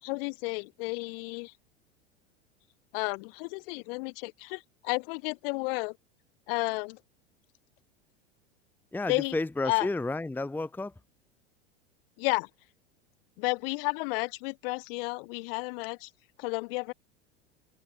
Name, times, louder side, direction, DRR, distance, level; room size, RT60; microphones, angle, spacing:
voice 1, 0.0-1.5 2.9-6.0 6.5-7.0 9.1-9.4 9.7-9.9 12.2-12.5 13.4-16.1 16.4-16.9, left 28 dB, 55° left, 5.9 m, -32 dB
voice 2, 8.9-10.9, left 2 dB, 5° left, 0.9 m, -31 dB
figure-of-eight pair, 85°, 34 cm